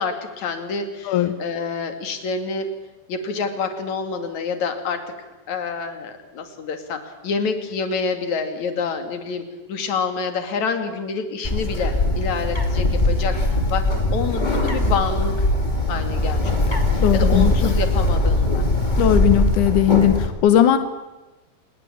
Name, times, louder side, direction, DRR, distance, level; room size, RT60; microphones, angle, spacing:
voice 1, 0.0-2.7 3.1-5.1 5.5-15.5 15.9-18.6, left 5 dB, 45° left, 7 dB, 3.1 m, -27 dB
Bird, 11.4-20.3, left 1 dB, 15° left, 1.6 m, -20 dB
voice 2, 17.0-17.7 19.0-20.8, left 11 dB, 75° left, 10 dB, 1.8 m, -18 dB
28.0 x 19.5 x 8.7 m, 1.1 s
omnidirectional pair, 5.2 m